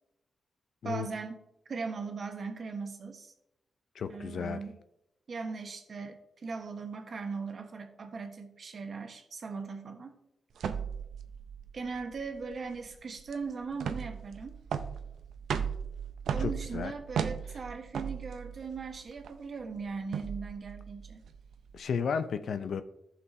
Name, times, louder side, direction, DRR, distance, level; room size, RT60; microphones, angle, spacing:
voice 1, 0.8-3.3 4.1-4.8 5.3-10.2 11.7-14.6 16.3-21.2, right 4 dB, 55° right, 1.2 m, -39 dB
voice 2, 4.0-4.6 16.4-16.9 21.7-22.8, left 6 dB, 75° left, 0.5 m, -33 dB
sound 1, 10.6-21.8, right 7 dB, 85° right, 0.5 m, -37 dB
14.5 x 5.9 x 2.7 m
cardioid pair, 75°, 0 cm